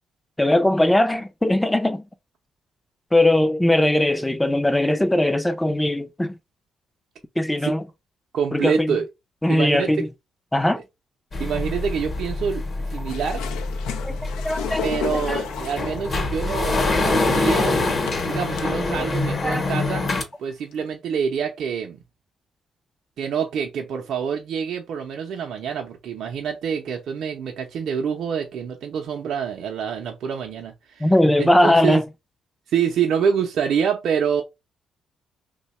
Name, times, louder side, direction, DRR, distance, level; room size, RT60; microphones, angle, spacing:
voice 1, 0.4-2.1 3.1-6.4 7.4-7.8 8.5-9.0 9.4-10.1 10.5-10.8 14.0-15.4 18.9-19.1 19.4-19.7 31.0-32.0, left 1 dB, 10° left, 0.4 m, -20 dB
voice 2, 8.3-9.0 9.5-10.1 11.4-13.4 14.8-17.8 18.3-20.0 20.4-22.0 23.2-31.1 31.4-32.0 32.7-34.4, right 7 dB, 70° right, 0.6 m, -26 dB
sound 1, 11.3-20.2, left 2 dB, 40° left, 0.9 m, -25 dB
sound 2, 13.1-16.1 17.0-17.1 18.1-18.6 19.2-19.3 19.7-20.1 20.8-20.9, left 8 dB, 90° left, 0.4 m, -32 dB
2.7 x 2.2 x 4.1 m
cardioid pair, 90°, 0 cm